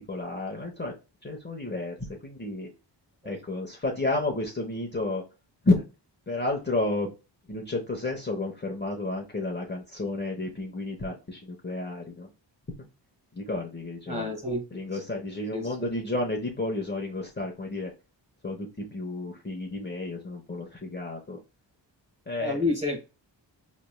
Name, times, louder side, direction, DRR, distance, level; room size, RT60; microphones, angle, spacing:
voice 1, 0.1-0.9 1.2-2.7 3.2-5.2 5.6-5.8 6.3-7.1 7.5-12.3 13.3-14.3 14.7-17.9 18.4-21.4 22.3-22.7, left 2 dB, 25° left, 0 dB, 1.0 m, -31 dB
voice 2, 14.1-14.8 15.5-15.9 22.4-23.0, left 2 dB, 15° right, 2 dB, 1.7 m, -30 dB
4.3 x 3.2 x 2.2 m, 0.29 s
cardioid pair, 60°, 45 cm